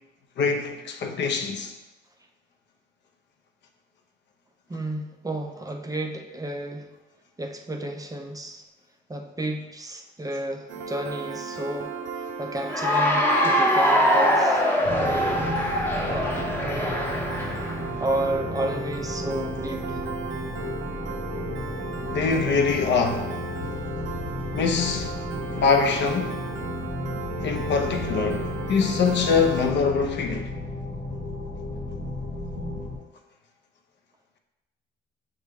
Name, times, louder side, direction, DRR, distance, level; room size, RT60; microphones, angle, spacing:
voice 1, 0.4-1.7 22.1-23.4 24.5-25.2 25.5-26.4 27.4-30.5, left 5 dB, 65° left, 0.6 m, -24 dB
voice 2, 4.7-6.9 7.4-8.6 9.1-11.9 12.4-14.6 15.0-15.6 16.0-17.1 18.0-20.0, right 1 dB, 20° right, 0.4 m, -32 dB
Piano, 10.7-29.7, right 4 dB, 70° right, 0.5 m, -35 dB
Cheering / Applause, 12.6-17.8, equal, 10° left, 0.7 m, -23 dB
sound 1, 14.8-33.0, left 2 dB, 45° left, 1.0 m, -34 dB
6.1 x 2.3 x 3.4 m
cardioid pair, 90°, 20 cm